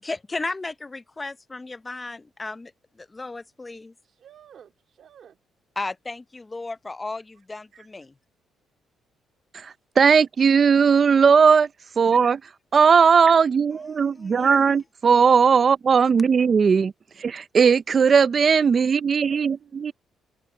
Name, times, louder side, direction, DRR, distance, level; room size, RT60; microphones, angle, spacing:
voice 1, 0.0-2.7 3.0-3.9 5.8-8.1 14.1-14.7, left 3 dB, 20° left, 0.7 m, -34 dB
voice 2, 4.0-5.4 7.4-7.5 7.7-7.9 18.9-19.9, right 8 dB, 60° right, 2.4 m, -51 dB
voice 3, 9.6-11.7 12.0-12.4 12.7-16.9 17.2-19.9, right 6 dB, 45° right, 0.5 m, -18 dB
open air
cardioid pair, 90°, 0 cm